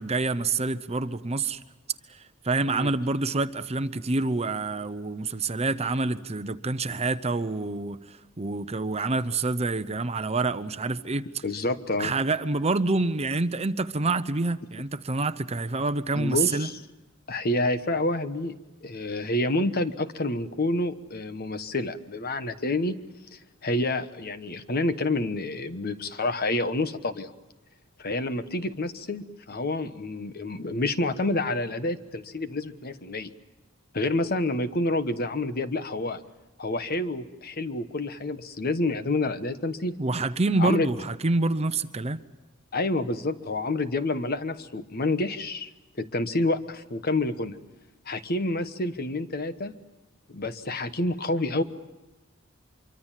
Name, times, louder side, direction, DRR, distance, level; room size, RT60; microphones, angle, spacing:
voice 1, 0.0-1.6 2.1-11.4 12.0-16.7 40.0-42.2, right 3 dB, 30° right, 0.8 m, -27 dB
voice 2, 11.4-12.1 16.1-16.8 17.3-18.5 18.8-22.9 23.3-27.3 28.0-33.3 33.9-36.2 36.6-40.0 40.6-40.9 42.7-45.7 46.0-47.6 48.1-49.7 50.3-51.6, left 2 dB, 50° left, 1.2 m, -28 dB
25.0 x 24.0 x 7.4 m
head